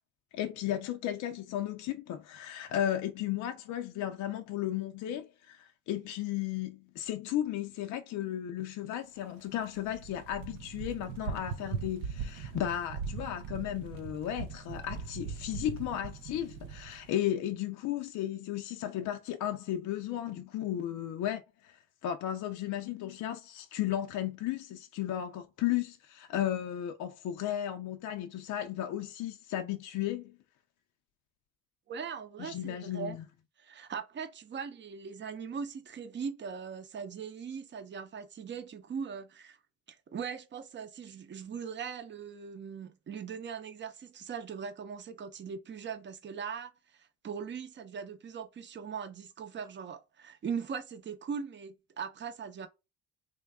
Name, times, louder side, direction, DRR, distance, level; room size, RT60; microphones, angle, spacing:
voice 1, 0.3-30.4 32.4-33.2, left 11 dB, 60° left, 0.5 m, -35 dB
sound 1, 9.5-17.1, right 6 dB, 80° right, 0.6 m, -40 dB
voice 2, 31.9-33.2 33.6-39.6 39.9-52.7, right 6 dB, 35° right, 0.6 m, -40 dB
3.2 x 2.4 x 3.4 m
cardioid pair, 85°, 33 cm